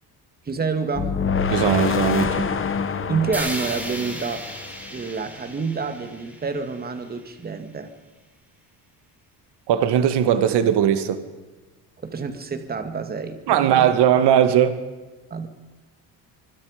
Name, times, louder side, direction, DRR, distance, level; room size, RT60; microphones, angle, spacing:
voice 1, 0.5-1.3 3.1-4.4 4.9-7.9 12.0-13.9 15.3-15.5, right 5 dB, 25° right, 8 dB, 2.1 m, -28 dB
sound 1, 0.9-5.0, left 5 dB, 30° left, 1.7 m, -26 dB
voice 2, 1.5-2.5 9.7-11.2 13.5-14.8, right 10 dB, 75° right, 10 dB, 2.0 m, -19 dB
sound 2, 3.3-7.4, equal, 5° right, 4.5 m, -35 dB
25.0 x 25.0 x 5.2 m, 1.3 s
cardioid pair, 170°, 41 cm